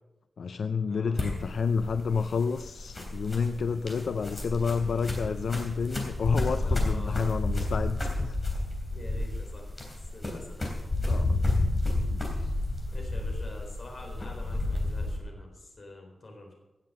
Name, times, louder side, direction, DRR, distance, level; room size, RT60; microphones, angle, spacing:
voice 1, 0.4-8.4 11.1-11.5 12.1-12.5, left 5 dB, 75° left, 10 dB, 0.4 m, -30 dB
sound 1, 1.1-15.2, left 2 dB, 30° left, 3.4 m, -31 dB
voice 2, 3.6-4.3 6.6-7.4 8.8-9.7 10.1-10.6 12.3-12.6 12.9-16.5, left 1 dB, 45° left, 2 dB, 3.9 m, -46 dB
17.0 x 7.5 x 6.6 m, 1.0 s
wide cardioid pair, 135°, 0 cm